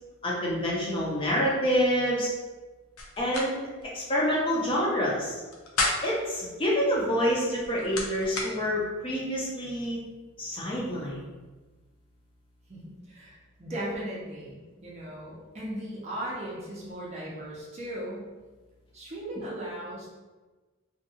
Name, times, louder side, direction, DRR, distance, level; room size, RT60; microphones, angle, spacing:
voice 1, 0.2-2.3 3.2-3.6 3.9-5.4 6.0-10.0 10.4-11.2, equal, 25° left, -5 dB, 0.5 m, -27 dB
sound 1, 3.0-3.5 3.8-3.9 5.4-6.2 7.4-8.5, left 2 dB, 80° left, 0.5 m, -31 dB
voice 2, 12.7-18.3 18.9-20.1, right 1 dB, 30° right, -4 dB, 0.5 m, -37 dB
2.6 x 2.2 x 2.7 m, 1.3 s
head